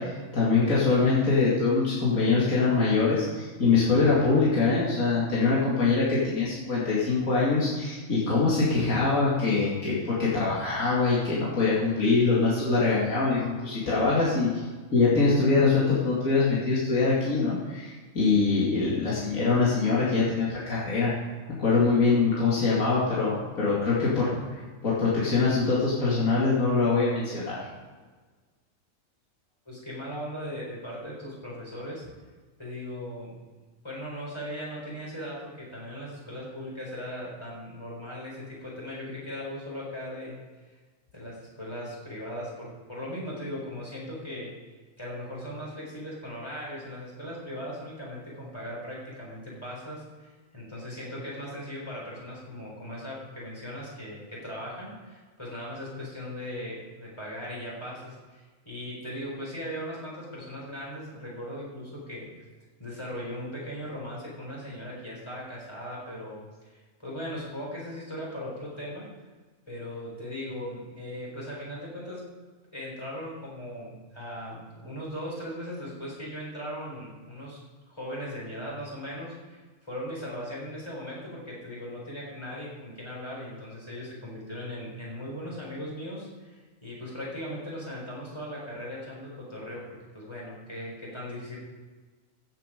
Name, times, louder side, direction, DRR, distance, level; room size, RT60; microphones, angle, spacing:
voice 1, 0.0-14.7 14.9-21.1 21.6-27.6, left 4 dB, 75° left, -7 dB, 2.7 m, -24 dB
voice 2, 29.7-32.0 32.6-33.4 33.8-40.3 41.1-44.5 45.0-62.4 62.8-69.1 69.7-72.2 72.7-77.6 77.9-91.6, equal, 20° left, -5 dB, 4.3 m, -38 dB
15.5 x 7.6 x 5.0 m, 1.4 s
omnidirectional pair, 1.4 m